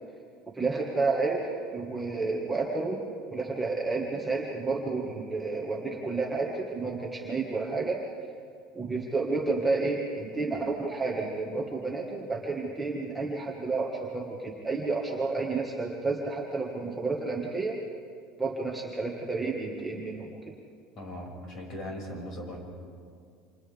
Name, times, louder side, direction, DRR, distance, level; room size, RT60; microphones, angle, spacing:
voice 1, 0.5-3.0 3.3-8.0 8.7-17.8 18.4-20.3, right 3 dB, 5° right, -3 dB, 1.8 m, -30 dB
voice 2, 20.9-22.6, equal, 40° left, -1 dB, 6.2 m, -39 dB
28.5 x 27.5 x 3.6 m, 2.3 s
cardioid pair, 165°, 0 cm